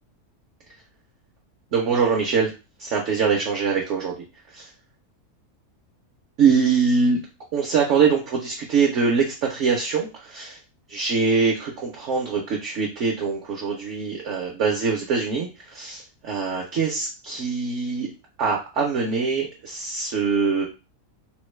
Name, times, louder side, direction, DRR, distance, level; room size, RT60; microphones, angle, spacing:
voice 1, 1.7-2.5 2.8-4.2 4.5-4.7 6.4-7.2 7.5-10.6 10.9-18.1 18.4-20.7, right 5 dB, 60° right, 0 dB, 0.8 m, -23 dB
3.6 x 2.1 x 3.1 m, 0.30 s
omnidirectional pair, 1.7 m